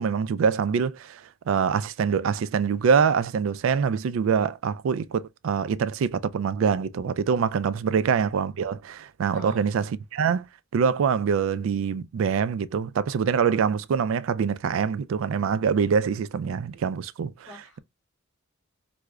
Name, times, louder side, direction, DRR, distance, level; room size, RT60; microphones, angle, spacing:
voice 1, 0.0-10.5 10.7-17.3, right 6 dB, 75° right, 0.3 m, -24 dB
voice 2, 9.3-9.7 17.4-17.8, left 1 dB, 15° left, 2.0 m, -46 dB
4.7 x 2.1 x 2.2 m
head